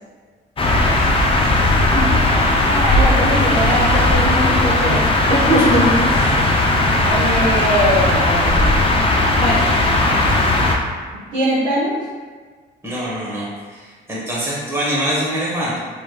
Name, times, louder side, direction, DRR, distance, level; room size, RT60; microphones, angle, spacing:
sound 1, 0.6-10.8, left 2 dB, 25° left, 0.5 m, -16 dB
voice 1, 1.0-1.5 1.9-5.0 5.3-6.3 7.0-8.9 9.3-9.6 11.3-12.0, equal, 80° right, -10 dB, 1.0 m, -21 dB
voice 2, 12.8-13.5 13.7-15.8, equal, 10° right, -7 dB, 1.0 m, -24 dB
3.2 x 3.1 x 2.2 m, 1.5 s
cardioid pair, 90°, 20 cm